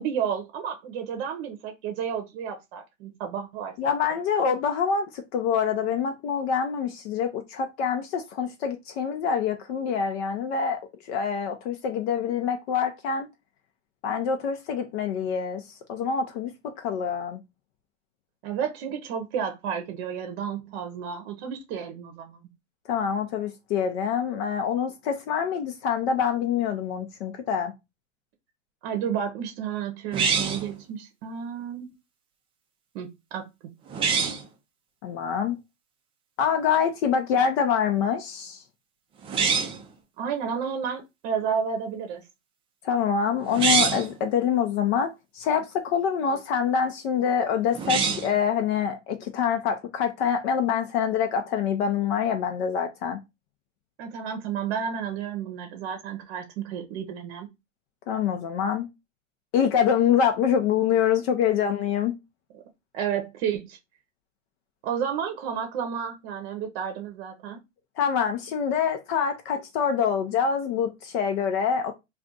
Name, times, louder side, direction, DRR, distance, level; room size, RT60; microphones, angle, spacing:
voice 1, 0.0-3.7 4.1-4.2 18.4-22.4 28.8-31.9 32.9-33.5 40.2-42.2 54.0-57.5 62.5-62.6 62.9-63.8 64.8-67.6, right 7 dB, 50° right, 0.7 m, -31 dB
voice 2, 3.8-10.8 11.1-13.3 14.0-15.6 15.9-16.5 16.8-17.4 22.9-27.7 35.0-35.6 36.4-38.6 42.8-53.2 58.1-58.9 59.5-62.1 68.0-71.9, left 7 dB, 50° left, 0.6 m, -25 dB
sound 1, 30.1-30.7 33.9-34.4 39.2-39.9 43.5-44.1 47.7-48.4, right 5 dB, 15° right, 0.4 m, -24 dB
2.4 x 2.4 x 3.8 m
hypercardioid pair, 115°, 38 cm